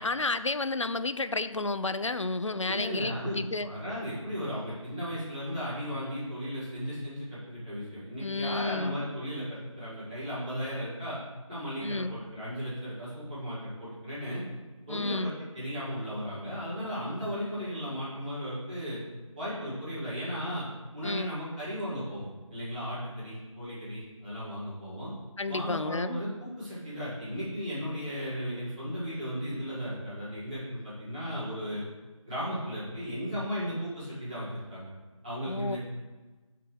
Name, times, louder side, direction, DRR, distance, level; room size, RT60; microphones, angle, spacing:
voice 1, 0.0-3.7 8.2-9.0 11.8-12.2 14.9-15.3 21.0-21.3 25.4-26.2 35.5-35.8, left 3 dB, 60° left, 12 dB, 0.5 m, -31 dB
voice 2, 2.6-11.2 11.5-14.4 14.9-19.0 19.3-20.7 20.9-25.1 25.5-31.8 32.3-34.9 35.2-35.8, equal, 15° right, -13 dB, 2.6 m, -35 dB
6.7 x 5.9 x 4.7 m, 1.2 s
figure-of-eight pair, 170°, 18 cm